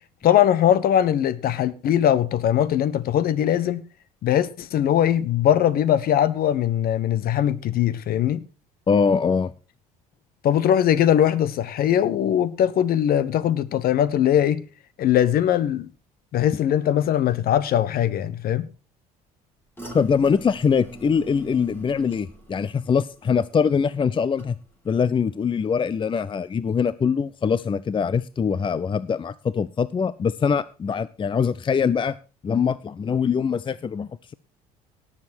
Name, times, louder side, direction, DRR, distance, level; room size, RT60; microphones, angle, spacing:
voice 1, 0.2-3.8 4.2-8.4 10.4-14.6 15.0-15.9 16.3-18.7, left 10 dB, 55° left, 1.2 m, -21 dB
voice 2, 8.9-9.5 19.9-24.6 24.8-32.2 32.4-34.3, left 6 dB, 25° left, 0.6 m, -23 dB
sound 1, 19.8-25.0 25.3-25.8 26.2-26.3, right 1 dB, 10° left, 4.6 m, -44 dB
18.0 x 7.4 x 4.4 m
hypercardioid pair, 60°, 19 cm